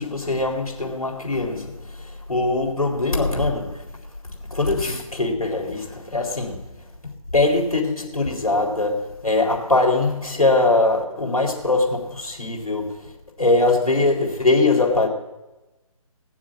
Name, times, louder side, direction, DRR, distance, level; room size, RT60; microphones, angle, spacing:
voice 1, 0.0-3.9 4.5-6.6 7.3-13.1 13.4-15.1, left 2 dB, 80° left, 4.0 m, -22 dB
20.0 x 7.5 x 7.3 m
figure-of-eight pair, 150°, 18 cm